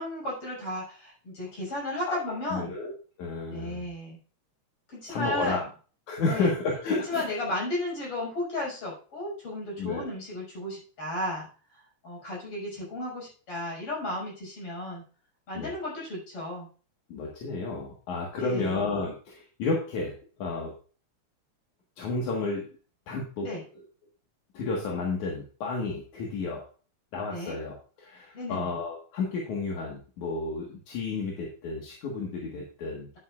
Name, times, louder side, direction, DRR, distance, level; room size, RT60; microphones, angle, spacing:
voice 1, 0.0-2.7 3.5-4.2 4.9-5.6 6.2-6.5 6.9-11.5 12.0-15.0 15.5-16.7 18.4-18.8 23.4-23.6 27.3-27.6 28.3-28.7, left 1 dB, 50° left, -4 dB, 6.8 m, -34 dB
voice 2, 2.0-2.9 3.2-3.8 5.1-5.6 6.1-7.3 9.8-10.1 15.5-15.7 17.1-20.7 22.0-22.7 23.1-23.5 24.5-26.6 27.1-33.1, left 3 dB, 75° left, -2 dB, 3.1 m, -31 dB
10.5 x 9.6 x 2.5 m, 0.38 s
omnidirectional pair, 3.4 m